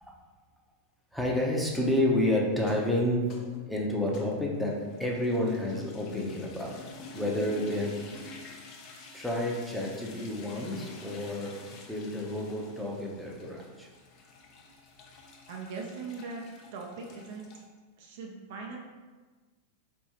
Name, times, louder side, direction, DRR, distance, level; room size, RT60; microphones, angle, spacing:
voice 1, 1.1-3.4 3.7-6.8 7.1-8.0 9.1-11.6 11.9-13.9, left 1 dB, ahead, -3 dB, 0.7 m, -30 dB
sound 1, 2.5-17.6, left 3 dB, 40° left, 0.7 m, -49 dB
voice 2, 15.5-16.4 16.7-17.5 18.0-18.8, right 4 dB, 50° right, 1 dB, 0.5 m, -40 dB
4.4 x 3.4 x 2.8 m, 1.3 s
figure-of-eight pair, 90°, 0 cm